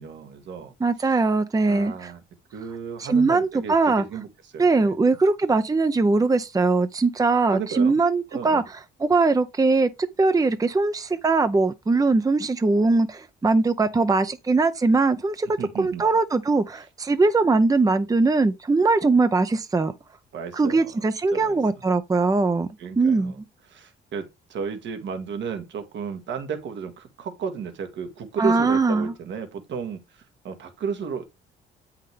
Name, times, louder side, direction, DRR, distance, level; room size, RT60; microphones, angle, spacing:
voice 1, 0.0-0.7 1.7-2.2 2.5-4.3 4.5-4.9 7.5-8.0 8.3-8.6 15.6-16.0 20.3-21.0 21.3-21.6 22.8-23.4 23.7-30.0 30.4-31.3, right 6 dB, 65° right, 1.6 m, -33 dB
voice 2, 0.8-2.1 3.0-4.0 4.6-9.9 10.2-15.5 15.8-19.9 20.5-22.7 23.0-23.3 28.4-29.1, right 3 dB, 20° right, 0.7 m, -21 dB
8.1 x 5.8 x 3.4 m
cardioid pair, 90°, 20 cm